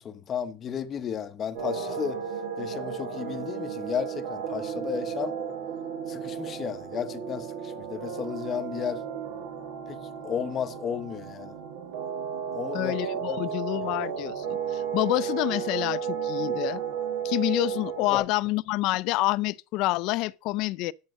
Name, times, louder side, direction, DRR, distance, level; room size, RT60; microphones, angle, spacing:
voice 1, 0.0-2.2 2.6-5.4 6.1-9.0 9.9-10.0 10.2-11.6 12.5-13.0 13.3-13.4 13.8-14.0 18.1-18.2, left 8 dB, 25° left, 1.0 m, -33 dB
sound 1, 1.5-18.2, right 7 dB, 85° right, 4.4 m, -33 dB
voice 2, 12.7-16.8 17.2-20.9, left 19 dB, 50° left, 0.5 m, -28 dB
12.0 x 7.7 x 5.2 m
supercardioid pair, 160°, 0 cm